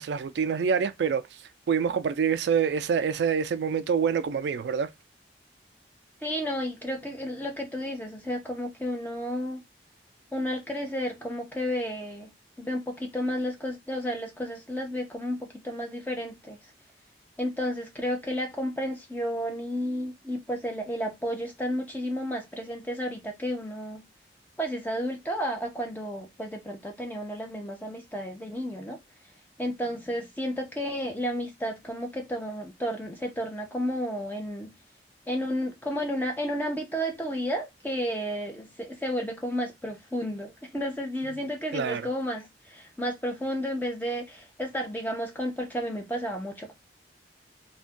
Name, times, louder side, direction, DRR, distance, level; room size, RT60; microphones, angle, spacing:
voice 1, 0.0-1.4 1.7-4.9 41.7-42.0, right 6 dB, 80° right, 0.3 m, -26 dB
voice 2, 6.2-9.6 10.3-16.6 17.4-24.1 24.6-29.0 29.6-34.7 35.3-46.7, equal, 10° left, 0.7 m, -32 dB
2.5 x 2.2 x 3.5 m
head